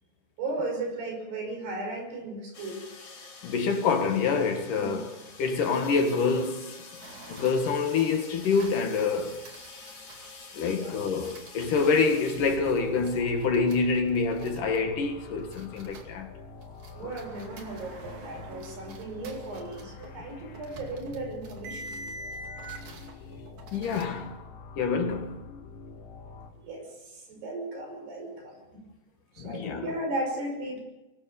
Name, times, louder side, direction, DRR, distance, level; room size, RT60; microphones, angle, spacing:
voice 1, 0.4-2.8 4.8-5.0 10.7-11.1 16.9-22.0 26.6-28.8 29.3-30.8, right 2 dB, 85° right, 7.7 m, -36 dB
sound 1, 2.5-12.6, left 4 dB, 45° left, 5.0 m, -47 dB
voice 2, 3.4-6.8 7.3-9.4 10.5-16.3 17.0-17.2 23.7-24.4 24.8-25.4 29.4-29.9, left 4 dB, 60° left, 2.9 m, -26 dB
sound 2, 7.0-10.3 11.1-16.2 16.6-24.0, right 2 dB, 50° right, 3.6 m, -47 dB
sound 3, 12.4-26.5, left 3 dB, 90° left, 3.9 m, -46 dB
23.5 x 19.5 x 7.0 m
omnidirectional pair, 4.6 m